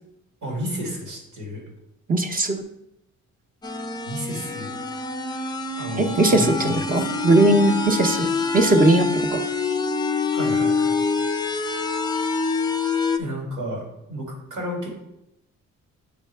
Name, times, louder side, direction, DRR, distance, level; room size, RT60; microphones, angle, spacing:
voice 1, 0.4-1.6 4.0-4.8 5.8-7.0 10.3-11.0 13.2-14.9, equal, 90° right, -2 dB, 2.6 m, -32 dB
voice 2, 2.1-2.6 6.0-9.5, right 2 dB, 30° right, 6 dB, 0.8 m, -19 dB
sound 1, 3.6-13.2, left 4 dB, 15° left, 0.5 m, -25 dB
8.4 x 4.1 x 3.4 m, 0.83 s
cardioid pair, 90°, 30 cm